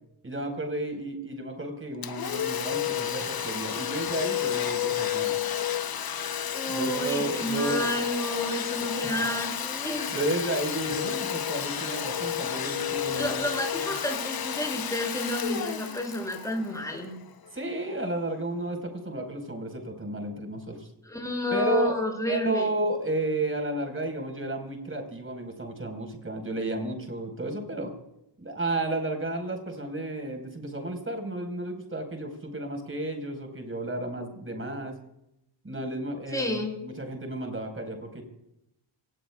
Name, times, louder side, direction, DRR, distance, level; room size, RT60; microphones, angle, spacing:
voice 1, 0.2-5.4 6.7-7.9 9.2-9.3 10.1-13.5 17.5-20.9 21.5-22.0 22.3-27.9 28.4-34.9 35.6-38.2, right 1 dB, 25° right, 4 dB, 5.0 m, -32 dB
Domestic sounds home sounds, 2.0-17.5, left 9 dB, 50° left, 1.0 m, -31 dB
voice 2, 6.5-10.1 13.1-17.1 21.1-22.7 36.3-36.8, left 1 dB, 5° left, 1 dB, 7.2 m, -30 dB
27.0 x 19.0 x 2.4 m, 0.83 s
wide cardioid pair, 120°, 47 cm